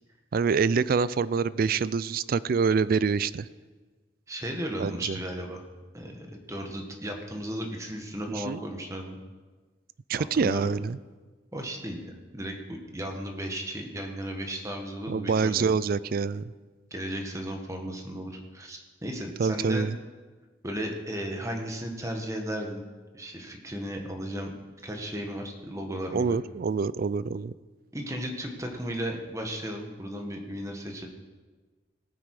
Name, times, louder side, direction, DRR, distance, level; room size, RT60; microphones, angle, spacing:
voice 1, 0.3-3.5 4.8-5.2 8.3-8.6 10.1-11.0 15.1-16.5 19.4-20.0 26.1-27.5, right 5 dB, 50° right, 17 dB, 0.4 m, -26 dB
voice 2, 4.3-5.6 5.9-9.2 10.3-10.7 11.5-15.7 16.9-19.9 20.6-22.8 23.1-24.5 24.8-26.4 27.9-31.1, equal, 15° right, 3 dB, 1.6 m, -35 dB
18.5 x 9.0 x 4.9 m, 1.3 s
head